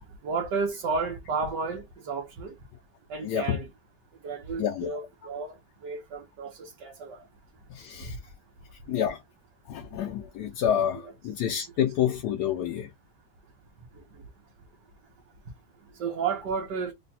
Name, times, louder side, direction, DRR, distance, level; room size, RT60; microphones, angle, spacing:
voice 1, 0.2-2.5 3.1-3.7 4.2-5.6 5.8-7.2 10.9-11.1 16.0-16.9, right 4 dB, 80° right, 1.6 m, -32 dB
voice 2, 3.2-3.6 4.6-4.9 7.7-8.2 8.9-9.2 9.7-12.9, left 9 dB, 75° left, 1.2 m, -28 dB
3.9 x 2.3 x 4.1 m
omnidirectional pair, 1.8 m